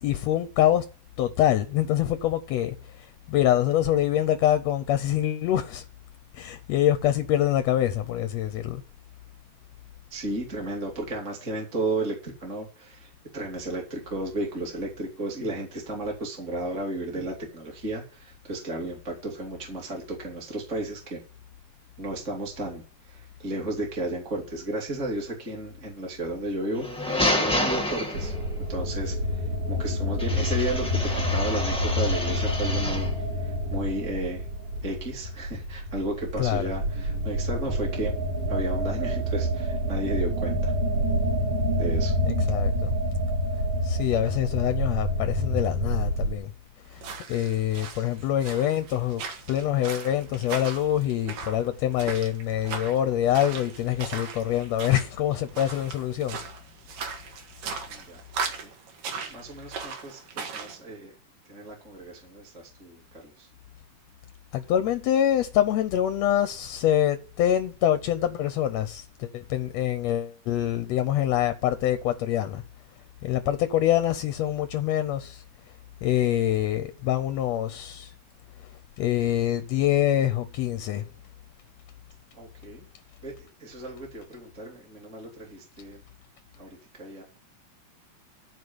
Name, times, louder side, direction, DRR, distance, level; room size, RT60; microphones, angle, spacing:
voice 1, 0.0-0.8 1.2-2.7 3.3-5.8 6.3-8.8 36.4-36.6 42.2-42.9 43.8-46.5 47.3-49.2 49.5-56.4 64.5-72.6 73.2-75.4 76.0-78.1 79.0-81.0, left 11 dB, 70° left, 1.7 m, -25 dB
voice 2, 10.1-21.2 22.0-28.3 28.7-33.1 33.4-34.4 34.8-38.1 38.5-40.7 41.8-42.1 57.8-58.2 58.6-58.7 59.3-61.1 61.5-62.5 62.8-63.5 82.4-82.8 83.2-86.0 86.6-86.7 87.0-87.2, right 1 dB, 25° right, 2.8 m, -33 dB
sound 1, 26.7-28.6 30.2-33.2, left 1 dB, 5° left, 0.9 m, -29 dB
sound 2, 28.1-46.4, equal, 65° right, 4.5 m, -28 dB
sound 3, 46.9-60.8, right 5 dB, 85° right, 3.3 m, -38 dB
13.5 x 5.1 x 7.9 m
omnidirectional pair, 3.7 m